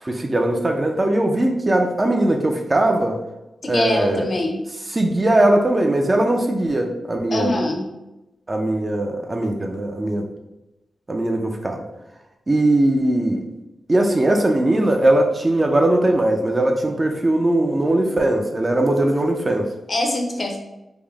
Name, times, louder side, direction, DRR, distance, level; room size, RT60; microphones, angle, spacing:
voice 1, 0.0-3.1 3.6-4.2 4.9-7.6 8.5-10.3 11.1-11.8 12.5-13.4 13.9-19.7, right 1 dB, 25° right, 3 dB, 0.3 m, -19 dB
voice 2, 3.6-4.6 7.3-7.9 19.9-20.6, left 1 dB, 40° left, 2 dB, 0.5 m, -23 dB
3.4 x 2.0 x 3.4 m, 0.96 s
wide cardioid pair, 135°, 0 cm